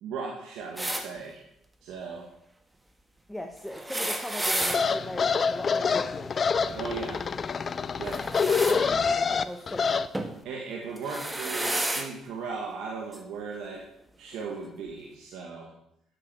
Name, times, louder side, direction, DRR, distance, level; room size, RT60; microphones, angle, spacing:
voice 1, 0.0-1.4 1.8-2.3 6.7-7.2 8.0-8.2 8.7-9.4 10.5-13.8 14.2-15.7, right 5 dB, 80° right, 0 dB, 1.8 m, -37 dB
sound 1, 0.8-1.0 3.7-4.8 8.0-8.8 10.1-10.3 11.0-12.1 13.1-13.2 14.4-14.5, right 1 dB, 15° right, 1.6 m, -31 dB
voice 2, 3.3-6.3 8.8-10.0, left 1 dB, 5° left, 3 dB, 1.2 m, -39 dB
sound 2, 4.6-10.1, left 5 dB, 45° left, 0.6 m, -26 dB
9.7 x 7.5 x 6.3 m, 0.77 s
supercardioid pair, 75°, 0 cm